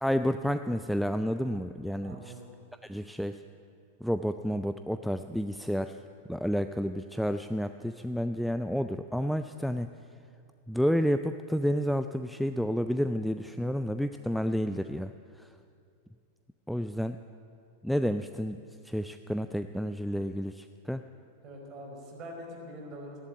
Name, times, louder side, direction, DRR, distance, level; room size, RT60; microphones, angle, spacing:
voice 1, 0.0-2.3 2.8-3.4 4.0-6.0 6.3-9.9 10.7-15.1 15.4-15.5 16.7-17.2 17.8-18.6 18.8-21.0, equal, ahead, 9 dB, 0.4 m, -30 dB
voice 2, 2.0-2.5 21.4-23.2, equal, 30° right, -1 dB, 4.6 m, -44 dB
15.0 x 11.0 x 8.6 m, 2.4 s
figure-of-eight pair, 90°, 0 cm